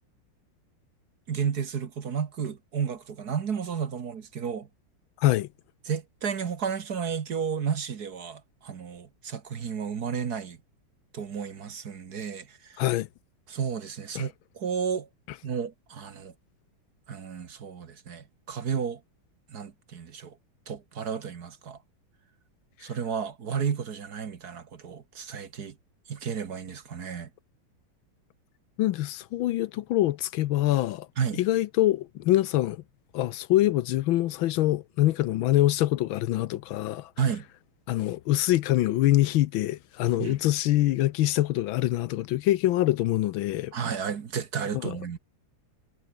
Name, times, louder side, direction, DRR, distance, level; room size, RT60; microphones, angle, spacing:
voice 1, 1.3-4.7 5.9-10.6 11.1-12.9 13.5-15.1 15.4-16.3 17.1-19.0 19.5-20.4 20.7-21.8 22.8-25.8 26.1-27.3 31.2-31.4 37.2-37.5 40.2-40.4 43.7-45.2, right 7 dB, 50° right, 1.8 m, -32 dB
voice 2, 5.2-5.5 12.8-13.1 14.1-14.3 28.8-31.1 31.4-32.8 33.1-37.1 37.9-43.7 44.8-45.0, left 15 dB, 75° left, 1.4 m, -24 dB
omnidirectional pair, 2.3 m